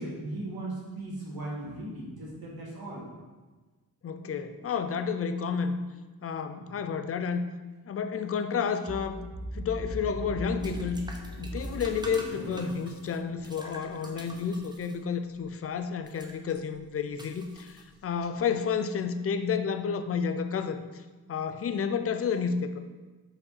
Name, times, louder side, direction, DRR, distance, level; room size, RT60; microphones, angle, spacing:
voice 1, 0.0-3.1 6.6-6.7, right 2 dB, 75° right, -5 dB, 1.8 m, -37 dB
voice 2, 4.0-5.8 6.2-7.4 7.9-9.2 9.5-11.0 11.4-21.0 21.3-22.8, left 6 dB, 40° left, 9 dB, 0.4 m, -31 dB
sound 1, 8.9-14.5, equal, 35° right, 0.9 m, -39 dB
sound 2, 9.4-18.3, right 1 dB, 10° right, 0.6 m, -48 dB
5.3 x 4.8 x 4.1 m, 1.3 s
wide cardioid pair, 150°, 37 cm